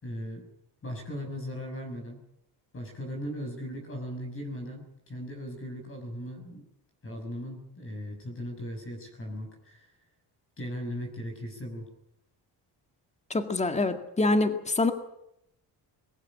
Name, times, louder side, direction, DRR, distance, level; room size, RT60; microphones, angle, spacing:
voice 1, 0.0-0.4 0.8-2.2 2.7-6.7 7.0-9.9 10.6-11.9, equal, 30° left, 3 dB, 6.3 m, -38 dB
voice 2, 13.3-14.9, left 2 dB, 15° left, 7 dB, 2.0 m, -25 dB
22.5 x 15.0 x 9.9 m, 0.80 s
cardioid pair, 130°, 41 cm